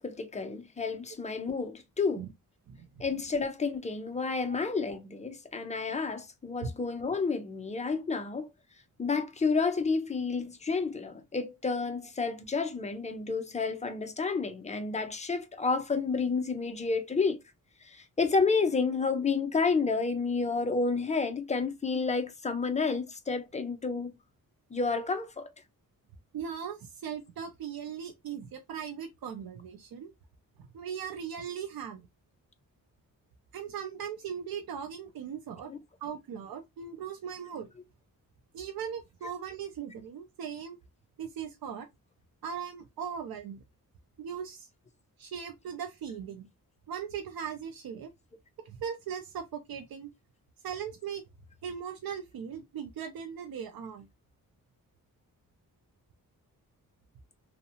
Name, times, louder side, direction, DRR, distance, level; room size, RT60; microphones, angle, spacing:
voice 1, 0.0-2.2 3.0-8.5 9.0-17.4 17.8-24.2 24.7-25.5 35.7-35.8, left 4 dB, 20° left, 0.4 m, -30 dB
voice 2, 2.7-3.3 4.5-4.6 6.6-6.7 26.3-30.1 30.7-32.0 33.5-35.7 36.0-37.7 38.5-40.8 41.2-41.9 42.4-43.6 44.2-44.7 45.2-46.5 46.9-48.1 48.7-50.1 50.6-51.2 51.6-54.1, right 7 dB, 85° right, 0.5 m, -39 dB
2.7 x 2.1 x 2.6 m
wide cardioid pair, 160°, 35 cm